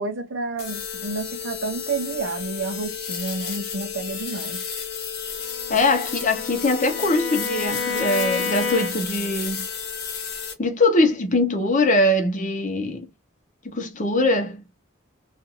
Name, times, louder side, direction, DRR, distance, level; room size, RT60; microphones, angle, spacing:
voice 1, 0.0-4.6, right 3 dB, 65° right, 0.6 m, -30 dB
sound 1, 0.6-10.5, left 7 dB, 55° left, 1.1 m, -32 dB
Bowed string instrument, 5.4-9.3, left 4 dB, 90° left, 0.8 m, -30 dB
voice 2, 5.7-9.7 10.6-13.1 13.6-14.6, left 2 dB, 40° left, 0.8 m, -22 dB
2.5 x 2.4 x 2.7 m
head